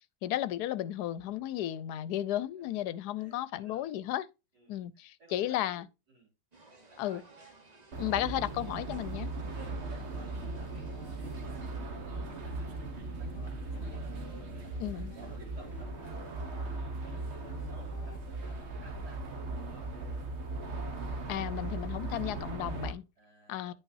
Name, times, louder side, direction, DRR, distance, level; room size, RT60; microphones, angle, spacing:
voice 1, 0.2-4.2 4.7-5.8 7.0-7.2 8.0-9.3 14.8-15.1 21.3-23.0 23.5-23.7, left 13 dB, 80° left, 1.2 m, -34 dB
voice 2, 3.2-3.9 4.5-6.3 6.9-7.3 9.5-12.8 13.1-14.1 14.5-19.9 23.2-23.8, right 3 dB, 75° right, 4.6 m, -57 dB
sound 1, 6.5-11.8, right 3 dB, 30° right, 1.1 m, -58 dB
sound 2, 7.9-22.9, right 2 dB, 45° right, 1.4 m, -38 dB
sound 3, 13.0-19.1, left 7 dB, 45° left, 1.0 m, -57 dB
10.0 x 5.6 x 2.6 m
omnidirectional pair, 1.7 m